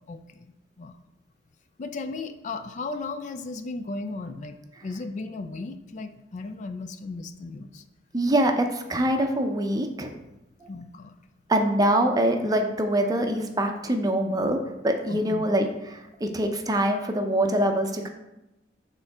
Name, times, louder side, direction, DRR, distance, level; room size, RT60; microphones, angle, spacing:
voice 1, 0.1-0.5 0.8-1.0 1.8-7.8 10.7-11.1 15.1-15.5, left 3 dB, 40° left, 8 dB, 0.3 m, -36 dB
voice 2, 8.1-10.1 10.6-10.7 11.5-14.6 14.8-18.1, right 1 dB, 20° right, 4 dB, 0.6 m, -24 dB
6.5 x 3.8 x 4.7 m, 0.94 s
head